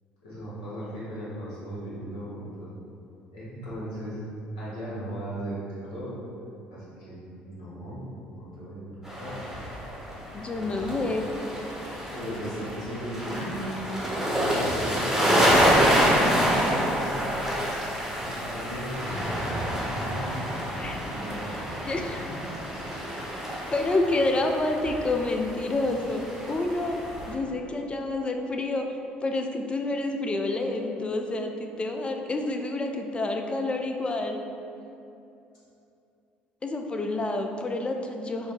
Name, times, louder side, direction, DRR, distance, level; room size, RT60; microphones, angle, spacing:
voice 1, 0.2-2.7 3.3-4.2 4.5-6.2 6.7-8.0 8.3-8.9 9.1-9.4 10.5-10.8 12.1-20.5 21.1-21.7, equal, 75° left, -9 dB, 1.1 m, -37 dB
sound 1, 9.0-27.3, equal, 5° right, 0.9 m, -28 dB
voice 2, 10.3-11.2 20.8-21.0 21.9-22.4 23.7-27.0 27.3-28.9 29.2-34.4 36.6-38.5, left 2 dB, 20° left, 4 dB, 0.3 m, -28 dB
4.8 x 2.0 x 2.5 m, 2.7 s
figure-of-eight pair, 55°, 5 cm